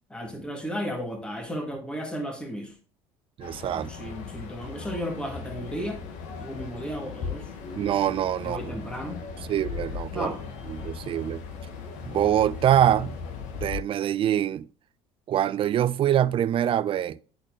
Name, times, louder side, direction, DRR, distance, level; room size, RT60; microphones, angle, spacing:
voice 1, 0.1-2.7 3.7-6.0 6.4-7.5 8.4-9.2 10.1-10.4, equal, 5° left, 1.5 m, -34 dB
sound 1, 3.4-13.8, left 5 dB, 65° left, 1.3 m, -38 dB
voice 2, 3.4-3.9 7.8-8.8 9.5-10.3 10.7-11.4 12.0-13.2 13.6-14.7 15.3-17.2, right 11 dB, 45° right, 0.4 m, -24 dB
10.5 x 4.3 x 2.6 m
hypercardioid pair, 75°, 13 cm